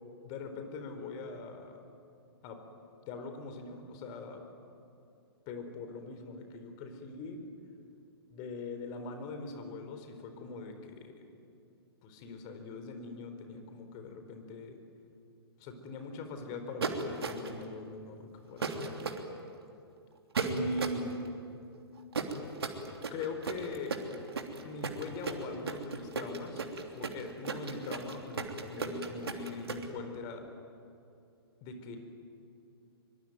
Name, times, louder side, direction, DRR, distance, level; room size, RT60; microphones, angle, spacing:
voice 1, 0.2-1.8 2.4-2.6 3.1-4.4 5.5-7.4 8.3-11.2 12.0-14.8 15.6-18.8 20.4-21.1 23.1-24.0 24.6-30.4 31.6-32.0, left 3 dB, 35° left, 6 dB, 4.4 m, -41 dB
sound 1, 16.8-17.6 18.6-19.2 20.4-21.0 22.1-29.8, right 4 dB, 70° right, 3.2 m, -35 dB
24.0 x 24.0 x 9.4 m, 2.6 s
figure-of-eight pair, 115°, 13 cm